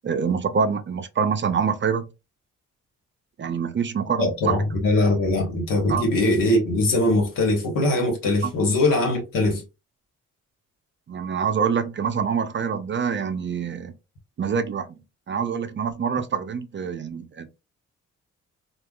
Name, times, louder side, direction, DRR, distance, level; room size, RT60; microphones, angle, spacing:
voice 1, 0.0-2.1 3.4-4.6 5.9-6.0 8.4-8.5 11.1-13.9 14.4-17.5, right 6 dB, 35° right, 0.5 m, -25 dB
voice 2, 4.2-9.6, left 2 dB, 80° left, 1.3 m, -21 dB
3.5 x 2.4 x 2.3 m
supercardioid pair, 55°, 33 cm